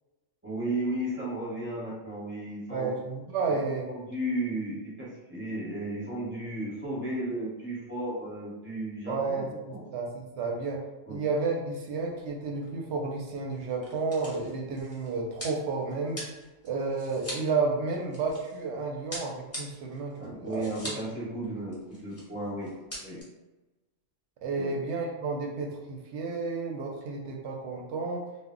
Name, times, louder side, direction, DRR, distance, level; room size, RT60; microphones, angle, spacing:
voice 1, 0.4-2.9 3.8-9.8 11.1-11.2 20.2-22.7 23.0-23.2 24.5-24.7, right 1 dB, 10° right, -8 dB, 0.8 m, -34 dB
voice 2, 2.7-3.9 9.1-16.2 16.6-20.9 24.4-28.3, right 4 dB, 70° right, 0 dB, 0.8 m, -32 dB
sound 1, 12.1-12.4 12.6-12.7 13.5-18.6 19.1-21.1 21.4-21.5 21.7-22.3 22.6-23.2, equal, 15° left, 0.5 m, -42 dB
2.1 x 2.1 x 3.6 m, 1.1 s
omnidirectional pair, 1.3 m